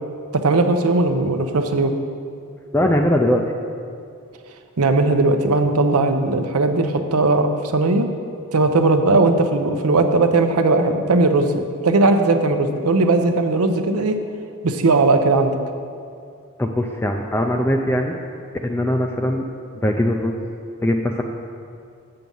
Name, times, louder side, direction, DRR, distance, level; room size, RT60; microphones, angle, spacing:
voice 1, 0.3-1.9 4.8-8.1 8.5-11.5 11.8-14.2 14.6-15.5, right 2 dB, 80° right, 7 dB, 0.7 m, -18 dB
voice 2, 2.7-3.4 16.6-18.1 18.6-19.4 19.8-20.4 20.8-21.2, left 1 dB, 10° left, 2 dB, 0.4 m, -20 dB
7.7 x 7.2 x 5.4 m, 2.4 s
head